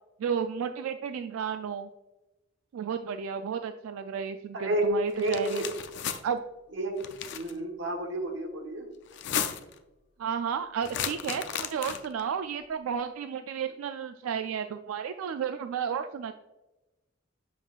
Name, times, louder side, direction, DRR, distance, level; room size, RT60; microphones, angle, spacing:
voice 1, 0.2-1.9 2.7-5.6 6.2-6.4 10.2-16.3, right 7 dB, 85° right, 8 dB, 0.3 m, -32 dB
voice 2, 4.5-4.9 5.1-5.7 6.7-7.0 7.3-8.8, right 2 dB, 60° right, 3 dB, 1.2 m, -30 dB
sound 1, 5.2-6.2 7.0-7.5 9.1-9.8 10.8-12.2, left 8 dB, 55° left, 0.4 m, -34 dB
7.3 x 5.6 x 2.4 m, 1.0 s
head